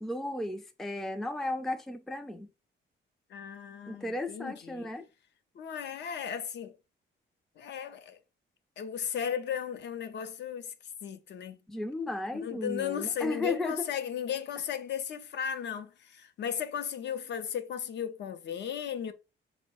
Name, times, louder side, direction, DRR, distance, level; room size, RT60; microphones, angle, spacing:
voice 1, 0.0-2.5 3.9-5.1 11.7-13.8, left 2 dB, ahead, 0.3 m, -34 dB
voice 2, 3.3-4.9 5.6-6.7 7.6-8.2 8.8-10.7 11.0-11.6 12.3-19.1, left 8 dB, 60° left, 0.5 m, -35 dB
4.6 x 2.1 x 4.2 m
cardioid pair, 150°, 21 cm